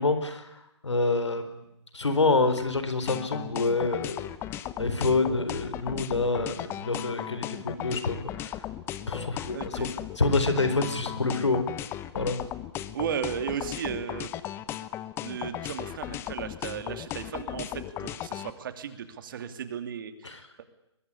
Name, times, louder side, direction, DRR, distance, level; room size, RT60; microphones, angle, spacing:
voice 1, 0.0-1.6 1.9-4.3 4.8-8.6 9.1-9.9 10.2-11.7 12.1-12.4 20.2-20.4, left 3 dB, 80° left, 10 dB, 4.3 m, -27 dB
sound 1, 3.1-18.5, left 12 dB, 15° left, 1.0 m, -36 dB
voice 2, 9.5-9.9 12.9-14.3 15.2-20.6, right 8 dB, 45° right, 9 dB, 2.8 m, -35 dB
23.5 x 21.5 x 9.9 m, 0.83 s
figure-of-eight pair, 135°, 15 cm